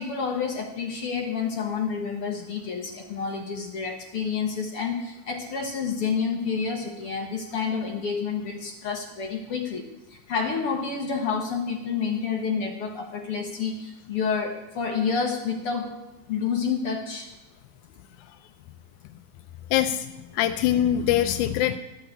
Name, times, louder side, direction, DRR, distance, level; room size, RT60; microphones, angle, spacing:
voice 1, 0.0-15.9 16.3-17.3, left 5 dB, 60° left, 2 dB, 1.7 m, -29 dB
voice 2, 19.7-21.8, left 11 dB, 80° left, 7 dB, 2.0 m, -23 dB
13.0 x 6.3 x 9.0 m, 0.97 s
omnidirectional pair, 3.7 m